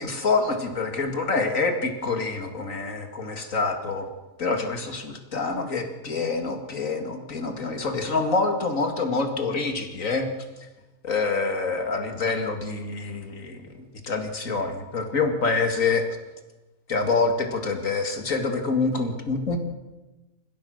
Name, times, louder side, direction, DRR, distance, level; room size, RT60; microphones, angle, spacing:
voice 1, 0.0-4.1 4.4-10.3 11.0-16.0 16.9-19.6, left 4 dB, 75° left, 5 dB, 2.7 m, -26 dB
29.0 x 15.5 x 6.5 m, 1.1 s
omnidirectional pair, 1.4 m